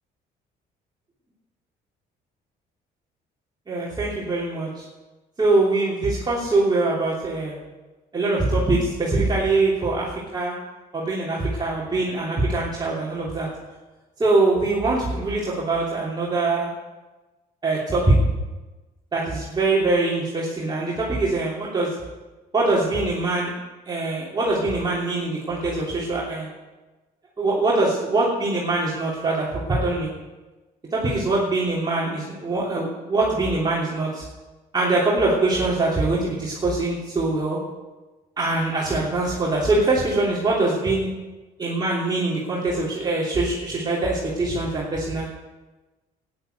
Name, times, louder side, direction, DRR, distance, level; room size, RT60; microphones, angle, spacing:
voice 1, 3.7-4.8 5.4-7.6 8.1-10.5 10.9-13.5 14.2-16.7 17.6-18.2 19.1-21.9 22.5-23.5 23.9-26.5 27.4-30.1 30.9-34.2 34.7-37.6 38.4-41.1 41.6-45.3, right 2 dB, 25° right, -6 dB, 3.0 m, -23 dB
12.0 x 10.0 x 8.0 m, 1.2 s
cardioid pair, 110°, 17 cm